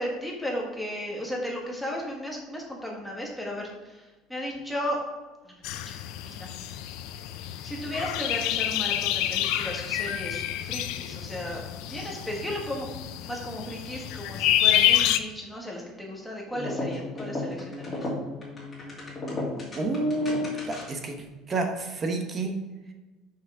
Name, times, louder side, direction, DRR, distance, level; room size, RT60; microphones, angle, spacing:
voice 1, 0.0-5.0 5.5-5.9 6.3-6.5 7.6-11.6 11.9-13.0 13.2-18.1, equal, ahead, -2 dB, 1.4 m, -35 dB
sound 1, 5.6-15.2, left 12 dB, 70° left, 0.5 m, -28 dB
sound 2, 16.5-21.1, left 2 dB, 20° left, 2.4 m, -34 dB
voice 2, 19.8-22.6, right 2 dB, 25° right, 4 dB, 0.9 m, -29 dB
6.3 x 5.7 x 4.8 m, 1.2 s
cardioid pair, 160°, 0 cm